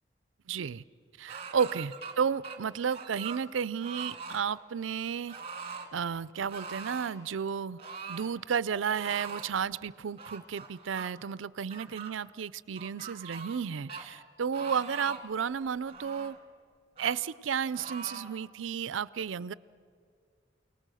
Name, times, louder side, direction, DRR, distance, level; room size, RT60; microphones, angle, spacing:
voice 1, 0.5-0.8 1.2-5.4 5.9-7.8 8.1-16.4 17.0-19.5, right 7 dB, 80° right, 19 dB, 0.5 m, -32 dB
sound 1, 1.3-2.1 2.4-3.4 3.8-4.4 5.3-5.9 6.5-7.2 7.8-8.3 8.9-9.5 10.2-11.1 11.7-12.1 12.8-13.6 13.9-14.0 14.5-15.3 15.9-16.4 17.0-17.2 17.7-18.3, right 4 dB, 30° right, 1.9 m, -42 dB
29.5 x 18.0 x 6.3 m, 2.2 s
head